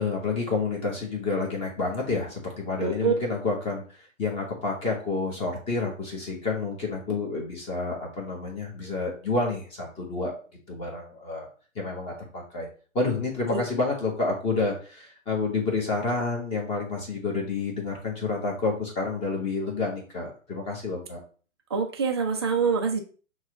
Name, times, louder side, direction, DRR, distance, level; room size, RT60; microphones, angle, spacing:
voice 1, 0.0-10.3 10.7-11.5 11.7-12.7 12.9-21.2, left 3 dB, 15° left, -1 dB, 1.1 m, -29 dB
voice 2, 2.8-3.1 13.5-13.6 21.7-23.0, right 5 dB, 20° right, 3 dB, 0.4 m, -25 dB
6.0 x 2.3 x 3.9 m, 0.38 s
figure-of-eight pair, 125°, 40 cm